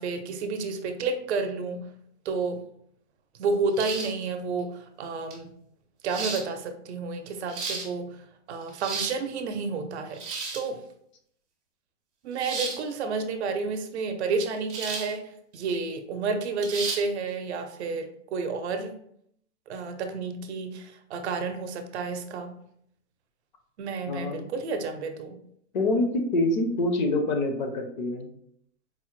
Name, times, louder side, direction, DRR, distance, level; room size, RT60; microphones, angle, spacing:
voice 1, 0.0-1.8 2.2-2.6 3.4-5.5 6.0-8.2 8.5-10.2 10.5-10.8 12.2-15.3 15.5-18.9 19.7-22.6 23.8-25.4, right 4 dB, 60° right, 7 dB, 0.6 m, -30 dB
sound 1, 3.8-4.2 5.3-5.4 6.1-6.4 7.3-7.9 8.6-9.2 10.1-10.7 12.4-12.8 14.7-15.1 15.5-15.6 16.6-17.0, right 4 dB, 20° right, 0.5 m, -33 dB
voice 2, 24.1-24.5 25.7-28.3, left 2 dB, 40° left, 5 dB, 0.5 m, -26 dB
4.5 x 2.1 x 3.0 m, 0.70 s
hypercardioid pair, 150°, 37 cm